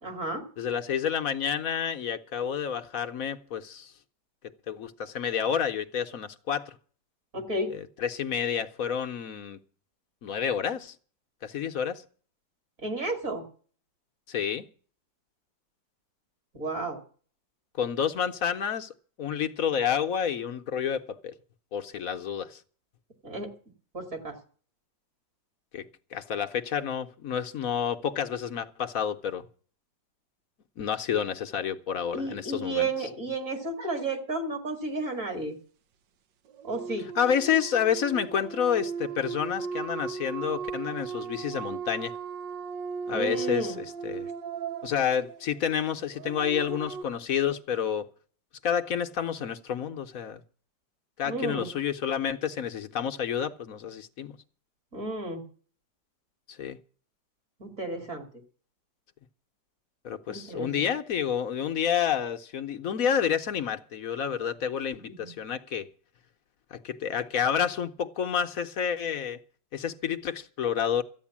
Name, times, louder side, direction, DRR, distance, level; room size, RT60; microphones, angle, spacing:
voice 1, 0.0-0.5 7.3-7.8 12.8-13.4 16.5-17.0 23.2-23.5 23.9-24.4 32.1-35.6 36.6-37.1 43.1-43.8 51.2-51.7 54.9-55.4 57.6-58.2 60.3-60.9 65.2-65.3, right 2 dB, 45° right, 2.9 m, -32 dB
voice 2, 0.6-3.9 4.7-6.8 7.7-9.6 10.2-10.9 11.4-12.0 14.3-14.7 17.8-18.9 19.2-21.3 21.7-22.6 25.7-25.9 26.1-29.5 30.8-32.9 37.1-42.1 43.1-44.3 44.8-48.1 48.6-50.4 51.2-54.4 56.5-56.8 60.0-65.9 66.7-69.4 69.7-71.0, left 8 dB, 55° left, 1.1 m, -29 dB
sound 1, 36.5-47.0, right 6 dB, 80° right, 1.5 m, -37 dB
14.0 x 9.4 x 7.2 m
omnidirectional pair, 2.0 m